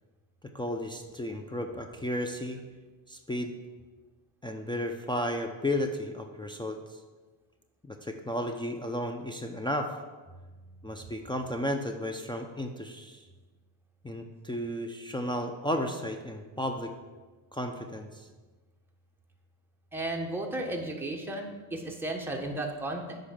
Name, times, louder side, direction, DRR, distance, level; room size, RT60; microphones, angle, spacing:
voice 1, 0.5-2.6 3.1-3.5 4.4-6.8 7.8-10.0 10.8-13.2 14.0-16.9 17.5-18.3, left 1 dB, 10° left, 4 dB, 0.6 m, -33 dB
voice 2, 19.9-23.2, right 1 dB, 5° right, 0 dB, 1.4 m, -34 dB
8.5 x 5.4 x 5.9 m, 1.3 s
cardioid pair, 100°, 43 cm